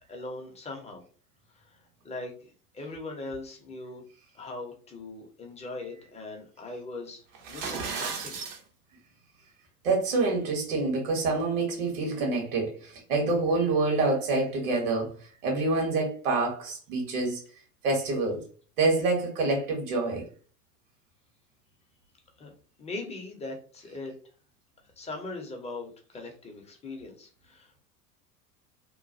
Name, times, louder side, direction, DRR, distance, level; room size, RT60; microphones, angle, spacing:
voice 1, 0.1-1.0 1.5-1.8 2.0-4.0 4.3-8.4 22.4-22.5 22.8-24.1 25.0-27.8, left 2 dB, 15° left, 0.6 m, -40 dB
sound 1, 7.3-8.6, right 5 dB, 40° right, 0.7 m, -34 dB
voice 2, 9.8-15.1 15.4-17.4 17.8-18.4 18.8-20.3, right 3 dB, 65° right, 1.4 m, -27 dB
3.0 x 2.2 x 2.6 m
figure-of-eight pair, 85°, 47 cm